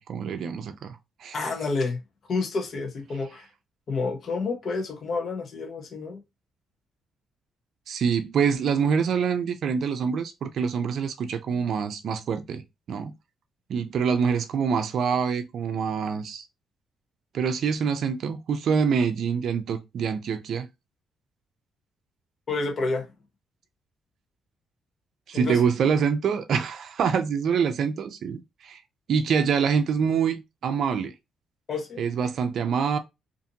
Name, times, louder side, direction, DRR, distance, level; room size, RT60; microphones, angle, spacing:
voice 1, 0.0-1.4 7.9-13.1 13.7-16.5 17.3-20.7 25.3-28.8 29.1-31.1 32.0-33.0, right 6 dB, 65° right, 0.4 m, -25 dB
voice 2, 1.3-2.0 2.3-3.5 3.9-6.2 22.5-23.1 25.3-25.6 31.7-32.0, left 3 dB, 50° left, 0.7 m, -29 dB
2.6 x 2.5 x 2.6 m
cardioid pair, 90°, 0 cm